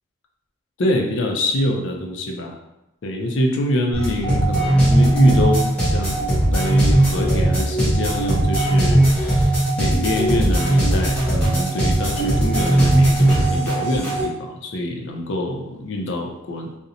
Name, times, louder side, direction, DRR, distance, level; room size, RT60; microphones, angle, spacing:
voice 1, 0.8-2.6 3.0-16.7, left 1 dB, 65° left, 1 dB, 0.4 m, -25 dB
sound 1, 3.9-14.2, right 1 dB, 5° left, 0.6 m, -18 dB
2.7 x 2.0 x 2.5 m, 0.88 s
head